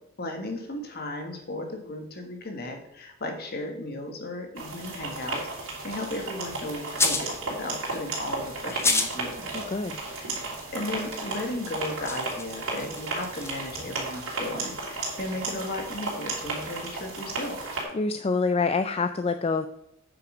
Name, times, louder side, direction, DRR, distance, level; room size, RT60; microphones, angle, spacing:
voice 1, 0.2-9.5 10.1-10.4 10.7-17.6, left 1 dB, 50° left, 3 dB, 1.7 m, -35 dB
sound 1, 4.6-17.8, right 3 dB, 85° right, 3.3 m, -34 dB
sound 2, 6.9-7.3 8.7-9.2 9.5-9.6 11.1-11.2 11.7-13.6, left 3 dB, 15° left, 0.8 m, -28 dB
voice 2, 9.5-10.0 17.9-19.7, left 4 dB, 30° left, 9 dB, 0.4 m, -26 dB
9.1 x 5.8 x 5.1 m, 0.77 s
head